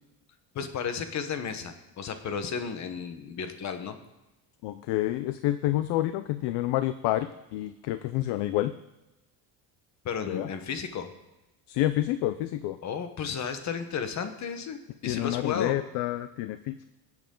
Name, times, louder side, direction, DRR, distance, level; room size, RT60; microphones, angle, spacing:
voice 1, 0.5-4.0 10.0-11.1 12.8-15.8, left 6 dB, 40° left, 8 dB, 1.2 m, -33 dB
voice 2, 4.6-8.8 10.3-10.5 11.7-12.8 15.1-16.8, left 14 dB, 70° left, 12 dB, 0.6 m, -28 dB
20.5 x 8.1 x 3.8 m, 0.99 s
cardioid pair, 150°, 43 cm